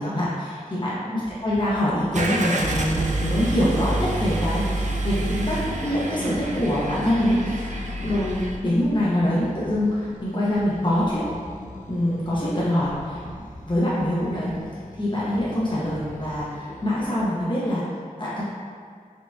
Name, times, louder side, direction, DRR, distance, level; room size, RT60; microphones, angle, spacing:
voice 1, 0.0-11.2 11.9-13.2 13.7-14.5 15.0-17.8 18.2-18.4, left 1 dB, 35° left, -9 dB, 0.8 m, -24 dB
sound 1, 1.2-17.1, left 1 dB, 60° left, 0.5 m, -42 dB
Car / Engine starting, 2.1-8.6, right 2 dB, 55° right, 0.4 m, -27 dB
4.3 x 2.9 x 2.2 m, 2.1 s
wide cardioid pair, 55°, 14 cm